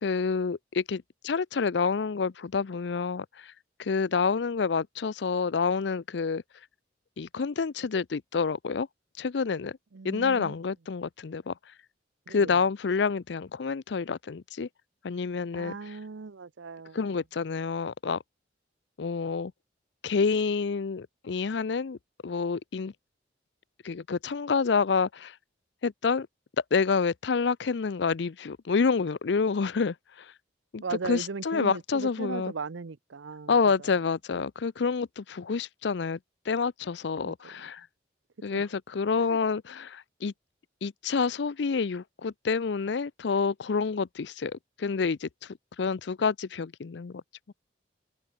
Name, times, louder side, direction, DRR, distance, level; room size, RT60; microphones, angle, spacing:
voice 1, 0.0-3.5 3.8-6.4 7.2-8.9 9.2-9.8 10.0-11.5 12.3-14.7 15.0-15.7 16.9-18.2 19.0-19.5 20.0-22.0 22.2-22.9 23.8-25.3 25.8-26.3 26.7-30.3 30.7-32.5 33.5-36.2 36.5-37.9 38.4-40.3 40.8-45.3 45.8-47.2, left 5 dB, 70° left, 0.5 m, -28 dB
voice 2, 9.9-10.6 12.3-12.6 15.5-17.2 30.8-33.9 37.2-37.3 38.5-38.7 39.2-39.4, right 4 dB, 85° right, 0.7 m, -38 dB
head